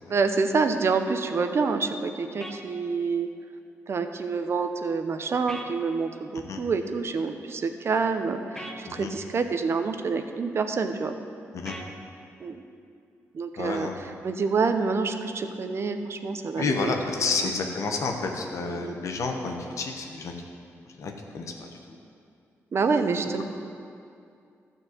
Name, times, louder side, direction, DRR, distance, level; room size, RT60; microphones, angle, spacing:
voice 1, 0.1-3.3 3.9-11.2 12.4-12.6 13.3-16.9 17.4-17.5 18.6-19.0 22.7-23.4, right 4 dB, 50° right, 7 dB, 0.7 m, -27 dB
sound 1, 2.4-2.6 5.5-5.7 8.6-8.8 11.7-11.9, equal, 10° left, 1.0 m, -38 dB
voice 2, 13.6-14.0 16.6-20.3 21.0-21.7, left 4 dB, 70° left, 2 dB, 1.2 m, -30 dB
12.0 x 4.5 x 7.9 m, 2.4 s
cardioid pair, 80°, 5 cm